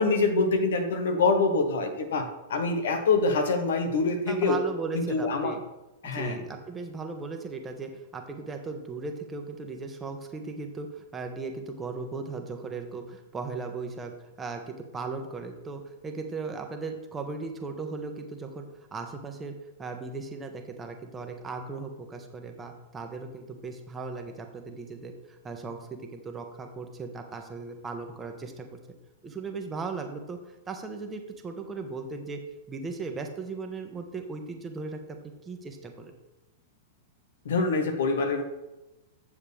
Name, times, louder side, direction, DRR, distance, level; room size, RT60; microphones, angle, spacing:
voice 1, 0.0-4.6 4.9-5.5 6.0-6.4 37.4-38.4, left 3 dB, 70° left, 6 dB, 1.3 m, -25 dB
voice 2, 4.3-5.6 6.0-14.1 14.4-28.8 29.2-36.1, right 4 dB, 20° right, 4 dB, 1.2 m, -37 dB
9.0 x 7.1 x 3.4 m, 1.0 s
hypercardioid pair, 105°, 0 cm